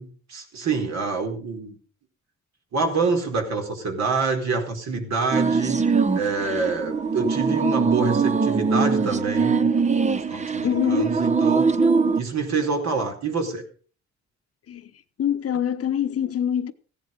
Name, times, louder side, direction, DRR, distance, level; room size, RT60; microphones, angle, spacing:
voice 1, 0.0-1.8 2.7-11.7 12.1-13.6, right 4 dB, 60° right, 4.5 m, -27 dB
sound 1, 5.3-12.2, right 5 dB, 25° right, 0.9 m, -22 dB
voice 2, 10.6-11.2 14.7-14.9 15.2-16.7, left 9 dB, 50° left, 1.1 m, -24 dB
16.0 x 10.0 x 5.4 m
cardioid pair, 90°, 30 cm